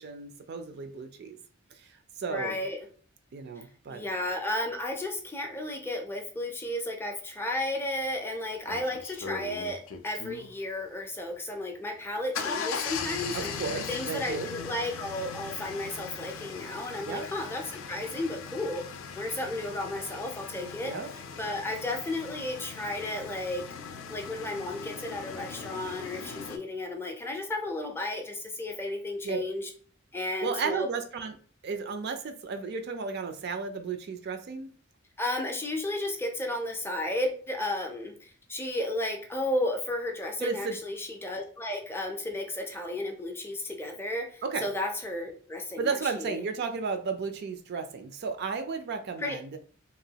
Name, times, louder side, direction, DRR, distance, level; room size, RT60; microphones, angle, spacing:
voice 1, 0.0-1.4 2.2-2.6 3.3-4.1 13.3-14.5 17.1-17.3 20.8-21.1 29.2-29.4 30.4-31.4 31.6-34.7 40.4-40.8 44.4-44.7 45.8-49.6, right 5 dB, 55° right, 7 dB, 0.4 m, -33 dB
voice 2, 2.3-2.8 3.9-13.5 13.9-17.6 17.9-18.8 19.2-20.9 21.4-23.6 24.1-29.7 30.1-30.9 35.2-46.4 49.2-49.4, left 1 dB, 10° left, 3 dB, 0.4 m, -33 dB
sound 1, 8.0-8.1 8.7-10.5 11.9-26.6, left 6 dB, 70° left, 0.4 m, -39 dB
2.9 x 2.2 x 2.8 m, 0.44 s
head